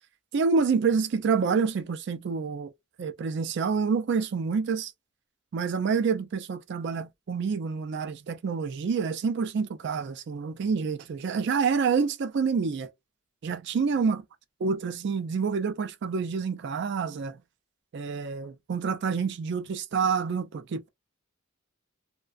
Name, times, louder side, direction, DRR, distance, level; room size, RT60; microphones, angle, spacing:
voice 1, 0.3-2.7 3.0-4.9 5.5-12.9 13.4-14.2 14.6-17.4 17.9-20.9, right 5 dB, 55° right, 0.4 m, -27 dB
2.4 x 2.2 x 2.3 m
head